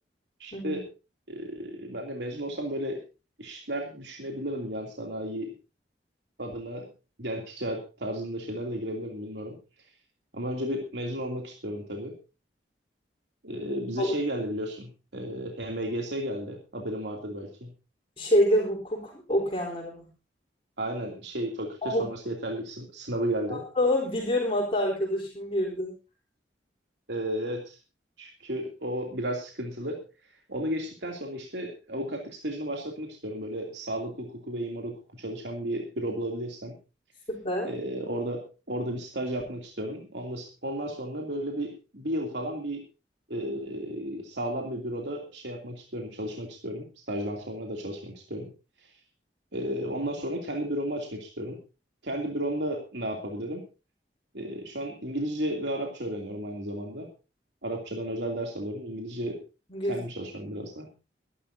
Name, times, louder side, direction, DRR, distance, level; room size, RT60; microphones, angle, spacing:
voice 1, 0.4-0.8 1.3-3.0 3.4-5.5 6.4-6.9 7.2-9.6 10.3-12.1 13.4-17.7 20.8-23.6 27.1-27.8 28.2-30.0 30.5-36.7 37.6-42.8 43.3-48.5 48.8-48.9 49.5-51.6 52.0-53.6 54.3-57.1 57.6-59.4 59.8-60.9, right 1 dB, 75° right, 1 dB, 2.9 m, -33 dB
voice 2, 18.2-20.0 21.8-22.0 23.8-25.9 37.3-37.7 59.7-60.0, equal, 30° left, -2 dB, 3.9 m, -26 dB
23.5 x 11.5 x 2.8 m, 0.31 s
head